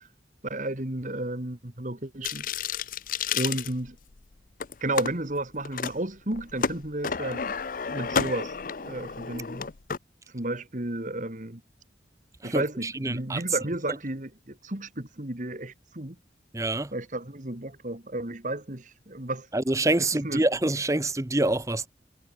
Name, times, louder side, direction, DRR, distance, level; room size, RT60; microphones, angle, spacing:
voice 1, 0.4-2.5 3.3-4.0 4.8-7.4 7.9-9.7 10.3-11.6 12.4-16.2 16.9-19.5 20.2-20.4, right 1 dB, 45° right, 2.1 m, -32 dB
sound 1, 2.2-4.2 4.6-5.1 5.6-5.9 6.3-10.0, left 6 dB, 50° left, 0.6 m, -31 dB
voice 2, 12.4-13.4 16.5-16.9 19.5-21.9, right 2 dB, 15° right, 0.8 m, -26 dB
head